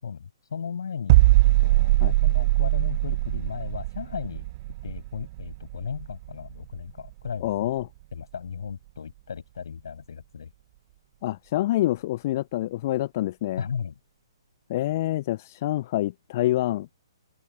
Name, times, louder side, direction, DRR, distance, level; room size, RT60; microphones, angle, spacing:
voice 1, 0.0-4.5 4.8-7.7 8.1-10.5 13.6-13.9, left 6 dB, 55° left, 6.2 m, -36 dB
sound 1, 1.1-6.8 7.1-7.3, right 19 dB, 35° right, 0.7 m, -22 dB
voice 2, 7.4-7.9 11.2-13.6 14.7-16.9, left 15 dB, 35° left, 0.7 m, -26 dB
open air
figure-of-eight pair, 125°, 3 cm